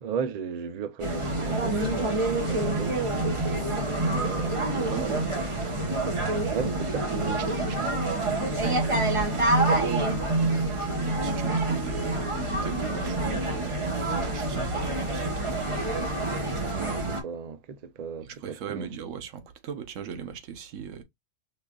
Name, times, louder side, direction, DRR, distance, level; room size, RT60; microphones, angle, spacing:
voice 1, 0.0-4.6 6.5-7.1 16.7-18.9, right 6 dB, 60° right, 0.4 m, -36 dB
sound 1, 1.0-17.2, right 2 dB, 25° right, 0.9 m, -27 dB
voice 2, 4.4-5.8 6.9-16.2 18.2-21.0, right 7 dB, 85° right, 1.1 m, -40 dB
5.1 x 2.5 x 2.2 m
omnidirectional pair, 1.3 m